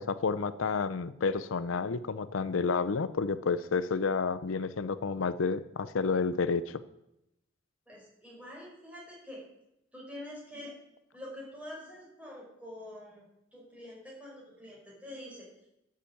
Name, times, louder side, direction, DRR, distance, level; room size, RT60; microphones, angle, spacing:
voice 1, 0.0-6.8, left 4 dB, 80° left, 15 dB, 0.5 m, -30 dB
voice 2, 7.9-9.4 9.9-10.7 11.1-13.2 13.5-15.5, left 1 dB, 5° right, -4 dB, 5.1 m, -46 dB
11.5 x 7.4 x 8.6 m, 0.85 s
head